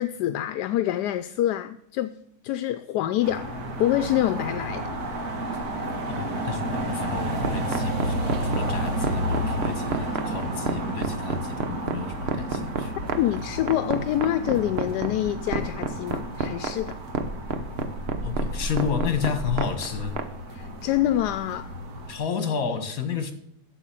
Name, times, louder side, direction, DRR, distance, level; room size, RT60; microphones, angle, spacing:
voice 1, 0.0-2.2 2.4-3.5 3.8-4.9 13.2-17.0 20.5-21.7, left 12 dB, 85° left, 1.1 m, -26 dB
sound 1, 3.2-22.2, right 1 dB, 65° right, 2.1 m, -31 dB
voice 2, 6.1-12.9 18.2-20.2 22.1-23.3, left 6 dB, 60° left, 2.0 m, -31 dB
sound 2, 7.4-20.3, right 5 dB, 45° right, 1.1 m, -28 dB
8.0 x 7.8 x 7.5 m
omnidirectional pair, 1.7 m